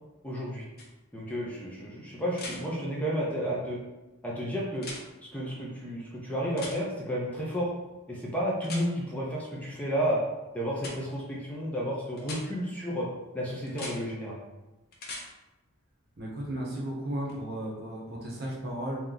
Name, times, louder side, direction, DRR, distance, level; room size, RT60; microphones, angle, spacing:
voice 1, 0.2-0.6 1.1-3.8 4.2-4.9 5.3-7.7 8.1-10.2 10.5-13.1 13.3-14.4, equal, 5° left, -5 dB, 0.6 m, -32 dB
sound 1, 0.8-0.9 2.3-2.6 4.8-5.0 6.6-6.8 8.6-8.9 10.8-10.9 12.2-12.4 13.7-14.0 14.9-15.2 17.3-17.4, left 2 dB, 45° left, 0.7 m, -39 dB
voice 2, 16.2-19.0, right 1 dB, 50° right, -3 dB, 1.1 m, -34 dB
3.5 x 2.8 x 3.8 m, 1.1 s
head